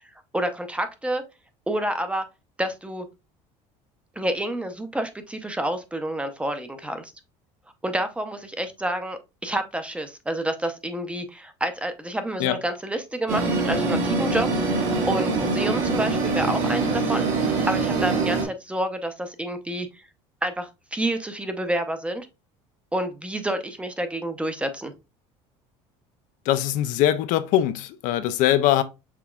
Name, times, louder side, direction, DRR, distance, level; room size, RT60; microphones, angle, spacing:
voice 1, 0.3-1.2 1.7-2.2 2.6-3.1 4.2-7.1 7.8-20.0 20.4-22.3 22.9-24.9, right 1 dB, 10° right, 0.6 m, -29 dB
sound 1, 13.3-18.4, right 3 dB, 65° right, 1.7 m, -24 dB
voice 2, 26.5-28.8, left 12 dB, 65° left, 0.5 m, -22 dB
5.9 x 3.4 x 2.3 m
supercardioid pair, 115°, 14 cm